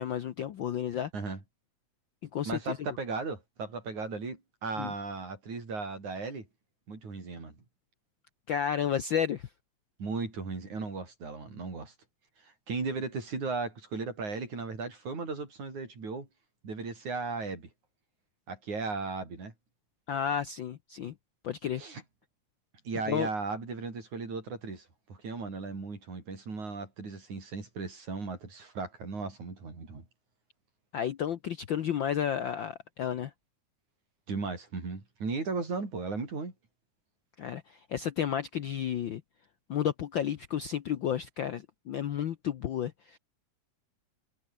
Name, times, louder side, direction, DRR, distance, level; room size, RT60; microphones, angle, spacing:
voice 1, 0.0-1.1 2.3-2.8 4.8-4.9 8.5-9.5 20.1-21.1 21.4-21.8 23.1-23.3 30.9-33.3 37.4-39.2 39.7-43.2, left 9 dB, 70° left, 1.1 m, -32 dB
voice 2, 2.5-6.5 6.9-7.6 10.0-11.9 12.4-16.3 16.6-17.7 18.5-19.5 21.8-22.0 22.8-30.0 34.3-36.5, right 4 dB, 85° right, 7.7 m, -36 dB
omnidirectional pair, 3.3 m